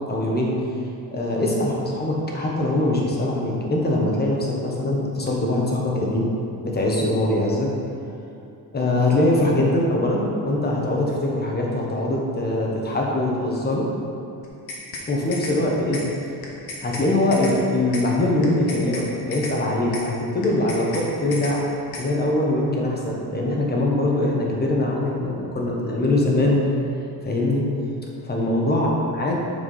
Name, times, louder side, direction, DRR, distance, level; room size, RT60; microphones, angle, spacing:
voice 1, 0.1-0.7 1.1-6.3 6.6-7.8 8.7-13.9 15.1-16.0 16.8-21.6 22.0-26.7 27.2-27.7 28.2-28.9 29.2-29.4, left 1 dB, 25° left, -2 dB, 1.3 m, -22 dB
sound 1, 14.4-15.1 15.3-15.6 15.9-16.1 16.4-17.1 17.3-17.6 17.9-18.1 18.4-19.1 19.3-19.6 19.9-20.1 20.4-21.1 21.3-21.6 21.9-22.1, left 3 dB, 60° left, 1.5 m, -34 dB
8.3 x 4.8 x 5.6 m, 2.6 s
cardioid pair, 160°, 41 cm